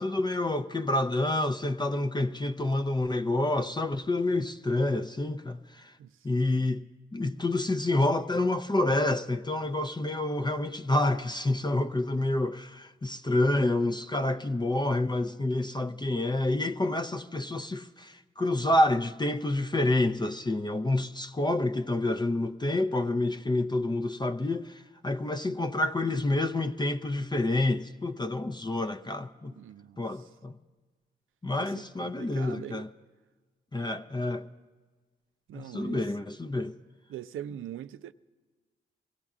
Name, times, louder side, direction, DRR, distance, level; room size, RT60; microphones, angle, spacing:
voice 1, 0.0-5.9 6.2-6.8 7.1-29.5 30.0-30.6 31.4-32.9 33.7-34.5 35.5-36.8, left 2 dB, 20° left, 0.5 m, -28 dB
voice 2, 29.6-30.0 31.6-31.7 32.0-32.9 35.5-36.0 37.1-38.1, right 11 dB, 70° right, 0.4 m, -42 dB
22.5 x 16.5 x 2.4 m
supercardioid pair, 45°, 21 cm